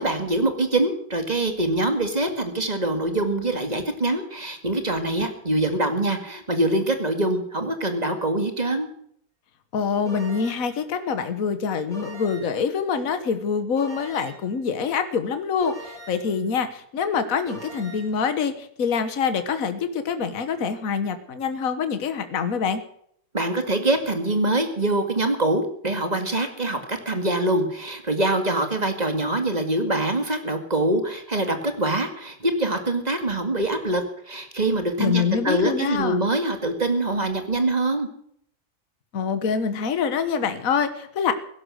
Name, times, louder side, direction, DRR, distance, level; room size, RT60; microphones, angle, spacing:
voice 1, 0.0-8.9 23.3-38.1, right 2 dB, 25° right, 6 dB, 2.1 m, -24 dB
voice 2, 9.7-22.8 35.0-36.2 39.1-41.3, left 6 dB, 65° left, 10 dB, 1.6 m, -25 dB
sound 1, 10.1-10.8 11.9-12.6 13.8-14.5 15.6-16.4 17.5-18.1, right 1 dB, ahead, 5.1 m, -41 dB
16.5 x 11.5 x 6.3 m, 0.67 s
omnidirectional pair, 1.6 m